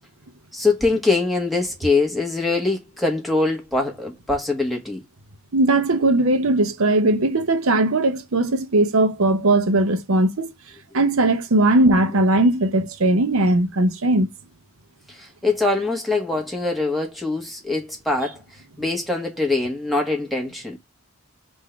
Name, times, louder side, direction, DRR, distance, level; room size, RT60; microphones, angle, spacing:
voice 1, 0.5-5.0 15.2-18.4 18.8-20.8, left 3 dB, ahead, 1.3 m, -23 dB
voice 2, 5.5-10.5 10.9-14.3, right 2 dB, 75° right, 0.7 m, -19 dB
3.7 x 2.7 x 4.5 m
head